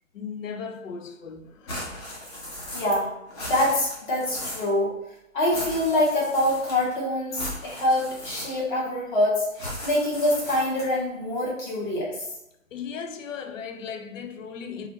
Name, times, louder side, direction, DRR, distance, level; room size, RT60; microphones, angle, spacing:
voice 1, 0.1-1.8 12.7-14.9, left 6 dB, 70° left, 0.5 m, -36 dB
sound 1, 1.7-3.0 3.3-4.7 5.5-6.9 7.3-8.8 9.5-11.0, left 1 dB, 20° left, 0.6 m, -37 dB
voice 2, 2.7-3.1 3.4-4.9 5.3-12.1, left 1 dB, 35° left, 1.2 m, -25 dB
3.1 x 2.4 x 2.9 m
hypercardioid pair, 140°, 40 cm